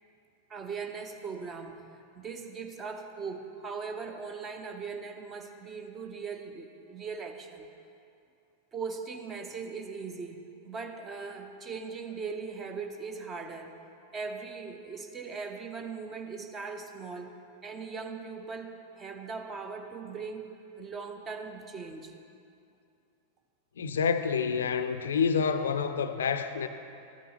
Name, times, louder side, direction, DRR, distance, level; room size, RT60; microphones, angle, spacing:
voice 1, 0.5-7.7 8.7-10.4 10.6-13.8 14.1-17.4 17.6-20.5 20.8-22.2, right 5 dB, 25° right, 5 dB, 0.7 m, -39 dB
voice 2, 23.8-26.7, left 6 dB, 65° left, 9 dB, 0.4 m, -28 dB
12.5 x 9.1 x 2.9 m, 2.6 s
figure-of-eight pair, 90°, 0 cm